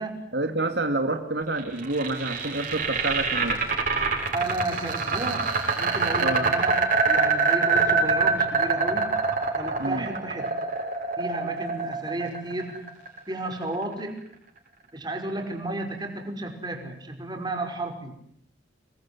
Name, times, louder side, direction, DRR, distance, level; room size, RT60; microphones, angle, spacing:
voice 1, 0.3-3.6 6.2-6.5 9.8-10.1, right 2 dB, 65° right, 6 dB, 2.4 m, -28 dB
sound 1, 1.6-13.6, right 4 dB, 50° right, 7.2 m, -25 dB
voice 2, 4.3-9.2 9.5-10.6 11.2-12.8 13.3-14.3 14.9-18.1, right 2 dB, 25° right, 3 dB, 5.3 m, -33 dB
27.5 x 21.0 x 9.7 m, 0.71 s
head